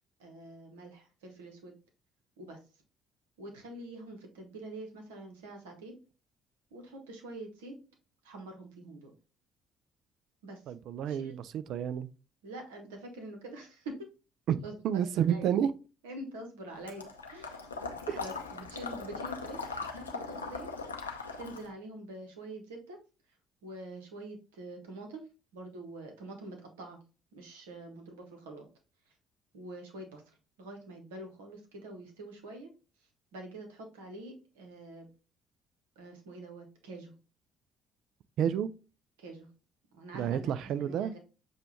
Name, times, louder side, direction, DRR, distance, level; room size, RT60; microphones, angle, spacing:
voice 1, 0.2-1.7 2.4-2.6 3.4-6.0 6.7-7.7 8.2-9.1 10.4-10.6 11.1-11.3 12.4-14.1 14.6-15.6 16.0-17.7 18.2-20.7 21.4-23.0 23.6-25.3 25.5-27.0 27.3-28.7 29.1-29.2 29.5-32.7 33.3-35.1 36.0-37.1 39.2-39.5 39.9-41.2, right 2 dB, 75° right, 1.0 m, -45 dB
voice 2, 10.7-12.1 14.5-15.7 18.1-18.2 38.4-38.7 40.1-41.1, right 9 dB, 55° right, 0.3 m, -30 dB
Water / Liquid, 16.9-21.7, left 4 dB, 85° left, 0.5 m, -40 dB
6.7 x 2.3 x 3.0 m
figure-of-eight pair, 50°, 0 cm